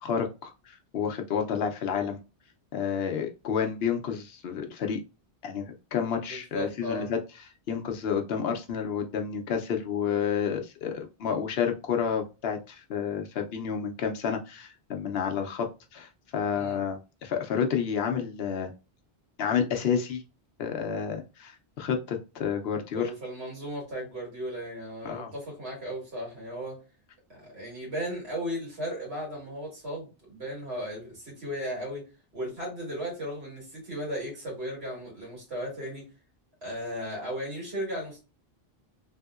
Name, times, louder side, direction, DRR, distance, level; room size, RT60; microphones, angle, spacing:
voice 1, 0.0-2.2 2.7-5.0 5.4-7.2 7.7-18.7 19.4-20.2 20.6-23.1 25.0-25.3, left 7 dB, 75° left, 0.9 m, -30 dB
voice 2, 6.2-7.1 16.5-16.8 22.9-26.8 27.3-32.0 32.3-36.1 36.6-38.2, equal, 80° right, 2.2 m, -36 dB
3.5 x 2.7 x 2.3 m
omnidirectional pair, 1.1 m